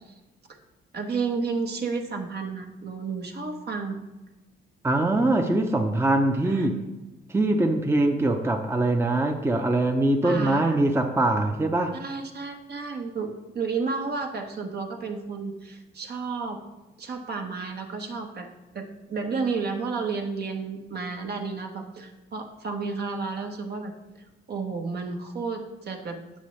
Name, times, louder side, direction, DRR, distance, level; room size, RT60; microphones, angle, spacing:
voice 1, 0.9-4.0 6.4-6.7 10.2-10.8 11.9-16.6 17.0-18.5 18.7-23.9 24.5-26.2, right 4 dB, 55° right, 3 dB, 1.2 m, -32 dB
voice 2, 4.8-6.8 7.3-11.9, right 2 dB, 10° right, 4 dB, 0.7 m, -23 dB
8.4 x 6.9 x 3.2 m, 1.1 s
cardioid pair, 90°, 20 cm